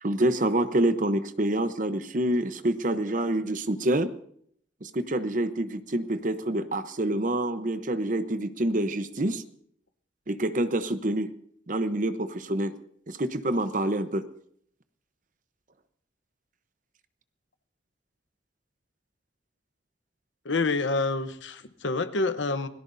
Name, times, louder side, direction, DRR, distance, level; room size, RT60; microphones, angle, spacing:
voice 1, 0.0-4.1 4.8-9.4 10.3-11.3 11.7-12.7 13.1-14.2, right 1 dB, 45° right, 11 dB, 0.9 m, -27 dB
voice 2, 20.4-22.7, left 3 dB, 90° left, 10 dB, 1.0 m, -27 dB
27.5 x 18.0 x 2.7 m, 0.65 s
head